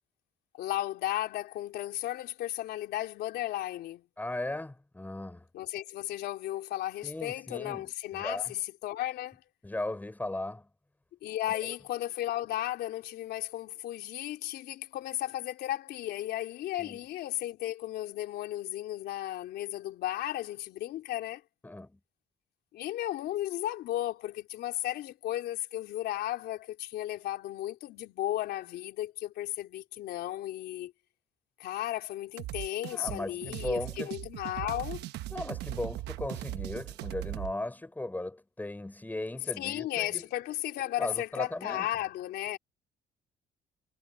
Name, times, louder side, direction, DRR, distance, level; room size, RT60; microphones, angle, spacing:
voice 1, 0.6-4.0 5.5-9.4 11.2-21.4 22.7-30.9 31.6-35.1 39.6-42.6, left 14 dB, 75° left, 3.7 m, -35 dB
voice 2, 4.2-5.4 7.0-8.5 9.6-10.7 11.6-11.7 16.8-17.0 21.6-22.0 32.9-34.1 35.3-40.2 41.0-41.9, left 2 dB, 10° left, 6.1 m, -37 dB
sound 1, 32.4-37.5, right 16 dB, 80° right, 1.1 m, -39 dB
cardioid pair, 110°, 17 cm